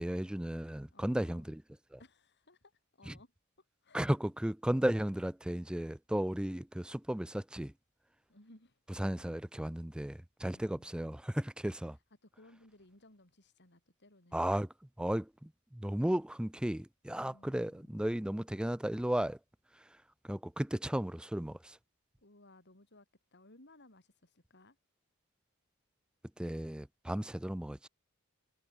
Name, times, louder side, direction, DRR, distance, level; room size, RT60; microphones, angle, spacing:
voice 1, 0.0-1.6 1.9-2.0 3.1-3.2 3.9-7.7 9.0-12.0 14.3-14.7 15.0-19.4 20.2-21.8 26.4-27.9, right 1 dB, 5° right, 0.4 m, -34 dB
voice 2, 0.9-1.5 2.0-3.3 3.8-4.1 8.3-9.3 10.5-11.0 12.2-14.5 17.2-18.0 22.2-23.1 23.3-24.8, left 1 dB, 55° left, 7.3 m, -61 dB
head